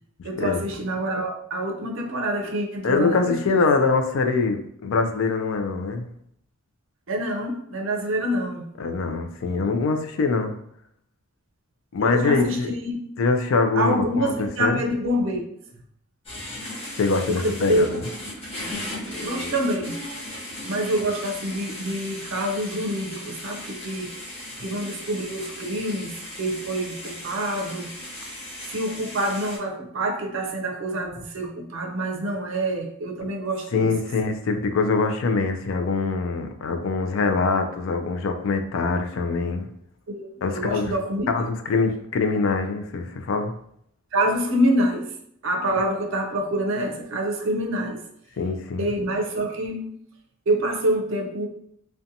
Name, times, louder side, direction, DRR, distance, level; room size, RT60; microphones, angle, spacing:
voice 1, 0.2-3.6 7.1-8.6 12.0-13.0 13.8-15.4 17.3-17.9 19.2-20.0 20.6-24.1 24.6-27.9 28.7-33.9 40.1-40.3 40.5-41.3 44.1-45.1 45.4-48.0 48.8-49.8 50.5-51.5, right 1 dB, 60° right, 1 dB, 0.5 m, -26 dB
voice 2, 2.8-6.1 8.8-10.5 11.9-12.7 13.2-14.8 16.9-18.0 33.7-39.7 40.4-41.0 41.3-43.5 48.4-48.9, left 4 dB, 65° left, 6 dB, 0.3 m, -23 dB
sound 1, 16.2-29.6, left 1 dB, 25° left, 0.7 m, -37 dB
2.6 x 2.2 x 2.6 m, 0.69 s
head